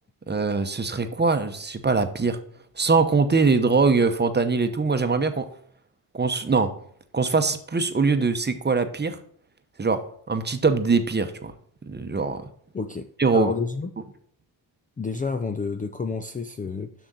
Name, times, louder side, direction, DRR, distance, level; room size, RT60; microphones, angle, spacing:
voice 1, 0.3-2.4 2.8-5.5 6.1-6.7 7.1-9.2 9.8-10.0 10.3-11.5 11.8-12.4 13.2-13.5, right 4 dB, 20° right, 8 dB, 0.9 m, -22 dB
voice 2, 12.7-13.9 15.0-16.9, left 4 dB, 20° left, 7 dB, 0.5 m, -29 dB
6.4 x 6.1 x 4.1 m, 0.62 s
supercardioid pair, 60°, 46 cm